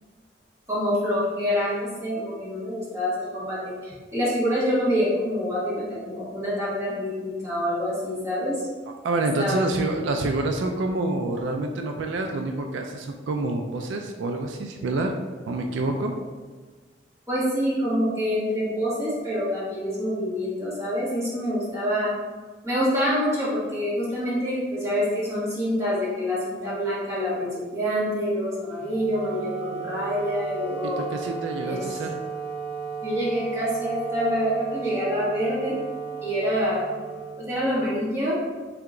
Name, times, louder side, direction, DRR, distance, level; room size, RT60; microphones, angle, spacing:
voice 1, 0.7-8.6 9.4-9.7 17.3-22.1 22.6-31.0 31.6-31.8 33.0-35.8 36.2-36.8 37.4-38.4, equal, 15° right, -9 dB, 1.3 m, -26 dB
voice 2, 9.0-15.1 15.5-16.1 30.8-32.2, right 2 dB, 80° right, 3 dB, 0.4 m, -27 dB
Wind instrument woodwind instrument, 28.8-38.1, right 6 dB, 50° left, 0.8 m, -34 dB
3.5 x 2.9 x 3.6 m, 1.4 s
head